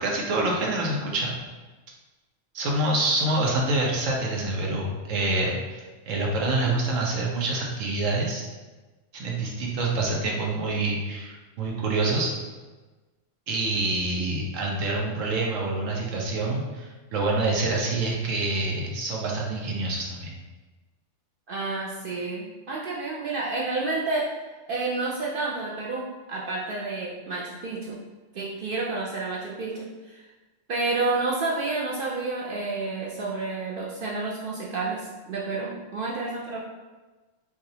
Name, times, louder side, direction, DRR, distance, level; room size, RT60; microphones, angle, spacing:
voice 1, 0.0-1.3 2.5-8.5 9.1-12.3 13.5-20.3, right 2 dB, 90° right, -2 dB, 1.1 m, -26 dB
voice 2, 21.5-24.4 24.7-28.0 28.3-30.2 30.7-36.6, right 3 dB, 60° right, -4 dB, 0.6 m, -30 dB
4.7 x 2.4 x 2.7 m, 1.2 s
omnidirectional pair, 1.3 m